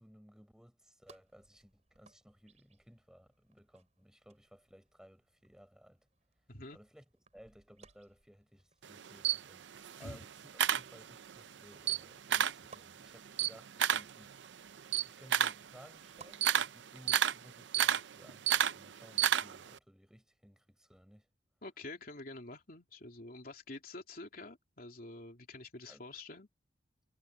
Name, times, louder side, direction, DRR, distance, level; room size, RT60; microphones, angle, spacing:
voice 1, 0.0-6.1 6.7-7.1 7.3-14.3 15.0-21.3 25.9-26.0, equal, 5° right, 5.6 m, -59 dB
sound 1, 1.1-16.4, right 4 dB, 40° right, 4.9 m, -64 dB
voice 2, 6.5-6.8 10.0-10.3 21.6-26.5, left 2 dB, 55° left, 3.1 m, -47 dB
Camera, 8.8-11.4 11.7-12.7 13.0-19.8, right 9 dB, 80° right, 0.6 m, -31 dB
head